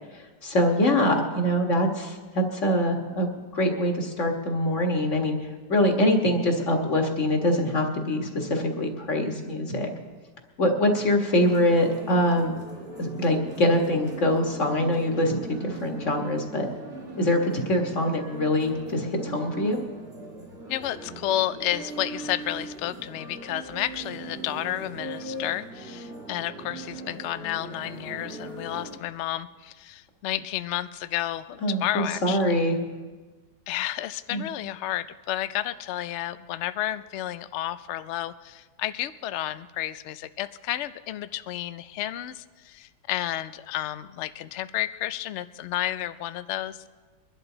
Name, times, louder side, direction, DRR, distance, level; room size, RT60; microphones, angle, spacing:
voice 1, 0.4-3.3 3.5-5.4 5.7-9.9 10.6-12.6 13.0-16.7 17.2-19.8 31.6-32.8 34.3-34.4, left 1 dB, 45° left, 3 dB, 1.9 m, -24 dB
sound 1, 11.4-29.0, right 2 dB, 35° right, 2.0 m, -40 dB
voice 2, 20.7-32.6 33.7-46.9, left 13 dB, 80° left, 13 dB, 0.6 m, -31 dB
23.0 x 11.5 x 3.9 m, 1.3 s
omnidirectional pair, 1.8 m